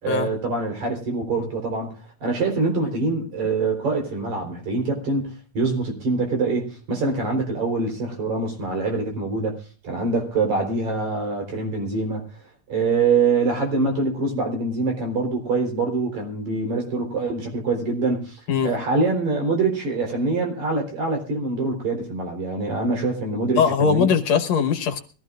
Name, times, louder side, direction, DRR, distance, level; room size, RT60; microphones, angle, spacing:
voice 1, 0.0-12.2 12.7-24.2, right 3 dB, 75° right, 2 dB, 5.3 m, -24 dB
voice 2, 23.6-25.0, left 6 dB, 65° left, 7 dB, 2.3 m, -20 dB
23.0 x 15.5 x 2.5 m, 0.37 s
omnidirectional pair, 3.3 m